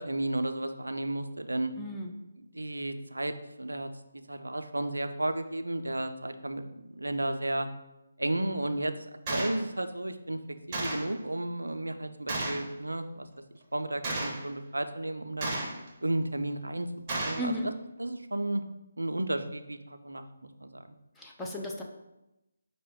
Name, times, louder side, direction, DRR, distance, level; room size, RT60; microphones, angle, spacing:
voice 1, 0.0-1.7 2.4-7.7 8.2-10.4 10.7-13.3 13.7-15.5 16.0-17.7 18.0-18.6 19.0-20.8, right 1 dB, 85° right, 8 dB, 0.4 m, -33 dB
voice 2, 1.8-2.1 17.4-17.7 21.2-21.8, equal, 5° left, -2 dB, 0.4 m, -35 dB
Gunshot gunfire, 9.3-9.6 10.7-11.1 12.3-12.7 14.0-14.4 15.4-15.9 17.1-17.5, right 2 dB, 25° right, 0.7 m, -33 dB
5.4 x 2.1 x 3.5 m, 0.93 s
figure-of-eight pair, 150°, 0 cm